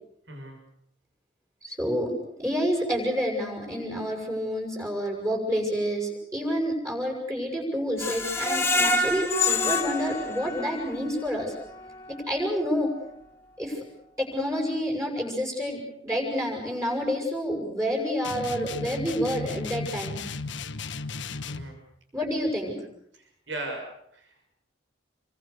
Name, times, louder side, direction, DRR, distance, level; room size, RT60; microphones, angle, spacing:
voice 1, 1.6-2.1 2.4-11.5 12.1-12.9 13.6-13.8 14.2-20.3 22.1-22.8, equal, 15° right, 0 dB, 7.0 m, -28 dB
Screech, 8.0-11.0 11.4-11.5 11.9-12.0, left 3 dB, 15° left, 2.1 m, -26 dB
sound 1, 18.2-21.7, left 3 dB, 75° left, 1.3 m, -35 dB
voice 2, 21.5-21.8 23.1-23.9 24.1-24.3, right 2 dB, 75° right, 3 dB, 6.5 m, -37 dB
28.0 x 24.0 x 6.8 m, 0.71 s
head